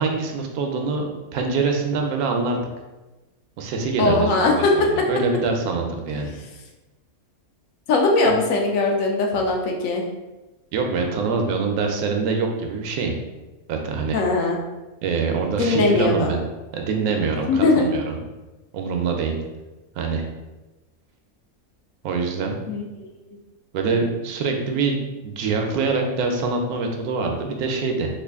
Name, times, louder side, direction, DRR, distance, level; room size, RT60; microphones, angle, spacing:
voice 1, 0.0-2.6 3.6-6.3 10.7-13.1 13.7-14.2 15.0-16.4 16.7-18.2 18.7-19.4 20.0-20.2 22.0-22.6 23.7-25.0 25.2-28.1, right 4 dB, 85° right, 3 dB, 1.1 m, -24 dB
voice 2, 4.0-5.1 7.9-10.0 14.1-14.6 15.6-16.3 17.4-17.9 22.7-22.8, left 3 dB, 70° left, 1 dB, 1.0 m, -20 dB
3.1 x 2.4 x 3.4 m, 1.1 s
omnidirectional pair, 1.5 m